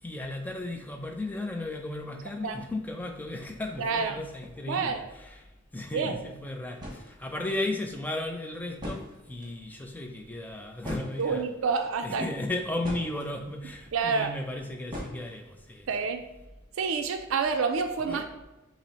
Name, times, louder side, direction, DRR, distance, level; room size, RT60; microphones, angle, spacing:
voice 1, 0.0-5.5 5.7-11.4 12.0-15.9 18.1-18.4, left 2 dB, 10° left, 0.4 m, -35 dB
voice 2, 3.8-4.2 4.7-5.1 5.9-6.1 11.2-12.3 13.9-14.3 15.9-16.2 16.8-18.2, right 5 dB, 75° right, 0.4 m, -28 dB
sound 1, 6.7-7.1 8.4-8.5 8.7-9.5 10.8-11.6 12.3-13.3 14.9-15.5, equal, 20° right, 1.1 m, -39 dB
5.9 x 2.0 x 4.1 m
head